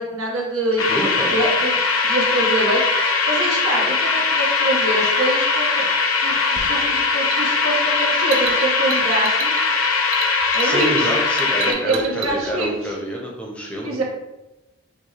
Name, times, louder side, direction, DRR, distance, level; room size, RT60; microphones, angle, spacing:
voice 1, 0.0-1.7 2.0-2.8 3.3-5.9 6.2-6.4 6.7-9.7 10.5-10.9 11.7-12.7 13.8-14.0, right 1 dB, 85° right, -2 dB, 1.1 m, -24 dB
sound 1, 0.8-11.7, left 4 dB, 80° left, 0.6 m, -20 dB
voice 2, 0.9-1.4 10.6-14.0, right 1 dB, 5° left, -2 dB, 0.6 m, -27 dB
sound 2, 6.6-12.7, right 5 dB, 65° right, 0.6 m, -32 dB
6.1 x 2.2 x 3.3 m, 1.0 s
head